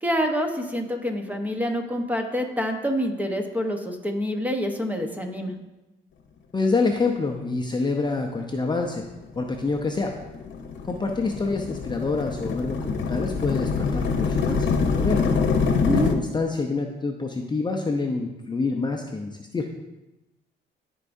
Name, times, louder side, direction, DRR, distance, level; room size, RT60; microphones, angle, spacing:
voice 1, 0.0-5.5 15.9-16.2, equal, 10° right, 3 dB, 1.0 m, -27 dB
voice 2, 6.5-9.0 9.3-10.1 10.8-15.2 15.9-19.7, left 3 dB, 20° left, 2 dB, 0.7 m, -27 dB
sound 1, 9.2-16.1, left 5 dB, 65° left, 0.9 m, -25 dB
13.5 x 4.7 x 2.7 m, 1.0 s
cardioid pair, 90°, 20 cm